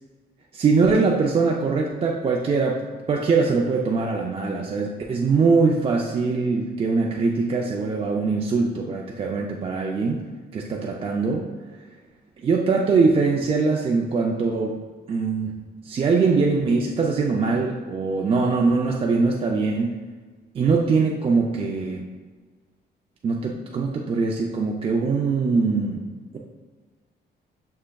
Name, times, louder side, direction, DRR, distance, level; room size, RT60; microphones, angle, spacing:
voice 1, 0.5-2.8 3.1-10.3 10.5-11.5 12.4-14.8 15.1-15.5 15.8-20.0 20.5-22.1 23.2-26.0, right 4 dB, 30° right, -1 dB, 0.3 m, -22 dB
6.3 x 3.3 x 2.2 m, 1.4 s
cardioid pair, 140°, 18 cm